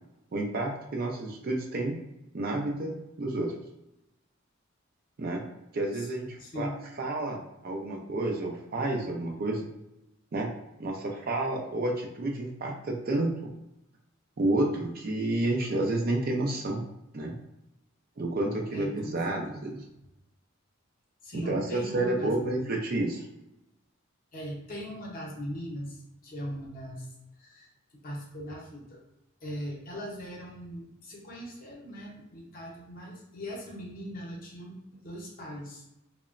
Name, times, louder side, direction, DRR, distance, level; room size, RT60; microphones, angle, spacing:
voice 1, 0.3-2.0 2.3-3.5 5.2-5.4 5.7-6.7 7.0-9.7 10.3-10.5 10.8-13.5 14.4-16.8 17.1-17.3 18.2-19.7 21.3-23.3, right 2 dB, 45° right, 1 dB, 0.4 m, -30 dB
voice 2, 6.4-6.8 18.7-19.2 19.5-19.8 21.2-22.7 24.3-27.1 27.4-27.7 28.0-29.0 29.4-35.9, equal, 45° left, -2 dB, 0.7 m, -40 dB
2.9 x 2.1 x 2.4 m, 0.87 s
head